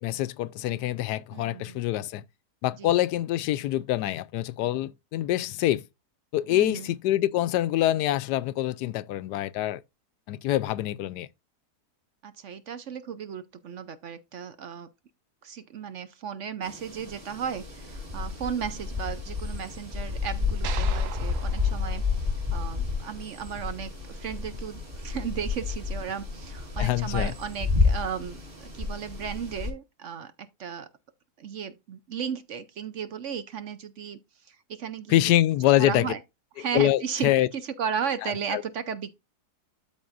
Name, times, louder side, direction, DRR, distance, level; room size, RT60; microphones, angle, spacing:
voice 1, 0.0-2.2 2.6-5.8 6.3-9.8 10.3-11.3 26.8-27.3 35.1-36.1 36.7-37.5 38.2-38.6, left 14 dB, 90° left, 1.2 m, -25 dB
voice 2, 1.3-1.8 2.8-3.0 6.5-6.9 12.2-14.9 15.4-30.9 31.4-34.2 34.4-35.3 35.8-36.2 36.6-39.1, right 7 dB, 60° right, 0.9 m, -35 dB
sound 1, 16.6-29.7, left 4 dB, 35° right, 2.6 m, -30 dB
sound 2, 20.6-23.0, right 10 dB, 80° right, 1.3 m, -41 dB
12.5 x 4.5 x 2.5 m
omnidirectional pair, 1.7 m